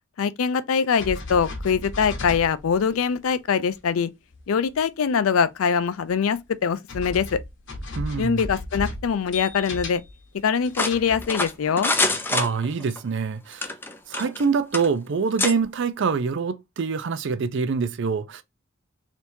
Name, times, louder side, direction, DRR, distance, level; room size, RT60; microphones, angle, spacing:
voice 1, 0.2-4.1 4.5-7.4 8.2-10.0 10.4-11.9, left 6 dB, 80° left, 0.4 m, -23 dB
sound 1, 1.0-3.1 3.7-3.8 4.3-4.4 4.7-4.8 6.1-6.2 6.9-10.2 10.6-11.8, left 2 dB, 60° left, 1.0 m, -35 dB
voice 2, 7.9-8.4 12.3-13.7 14.1-18.4, right 5 dB, 60° right, 0.4 m, -25 dB
sound 2, 10.7-13.0 13.5-14.5 14.7-14.9 15.4-15.6, left 2 dB, 10° left, 0.4 m, -25 dB
3.4 x 2.9 x 2.6 m
head